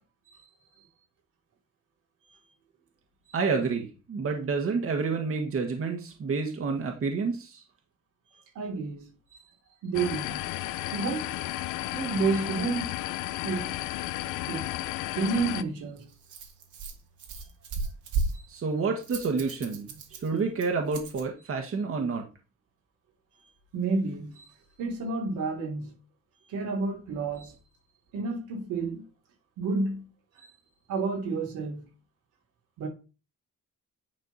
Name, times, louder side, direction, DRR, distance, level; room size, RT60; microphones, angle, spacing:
voice 1, 3.3-7.6 18.5-22.2, right 4 dB, 45° right, 1.6 m, -29 dB
voice 2, 8.3-9.0 9.3-9.4 9.8-10.4 10.9-11.4 11.9-13.0 13.4-13.8 14.5-14.7 15.1-16.1 18.3-18.4 23.4-24.4 24.8-25.9 26.5-27.5 28.1-29.0 29.6-30.1 30.4-30.5 30.9-31.8 32.8-32.9, right 4 dB, 90° right, 3.0 m, -30 dB
sound 1, 9.9-15.6, left 16 dB, 90° left, 0.5 m, -33 dB
Rattle, 15.2-21.3, right 4 dB, 70° right, 2.0 m, -36 dB
10.0 x 4.4 x 4.1 m
cardioid pair, 90°, 30 cm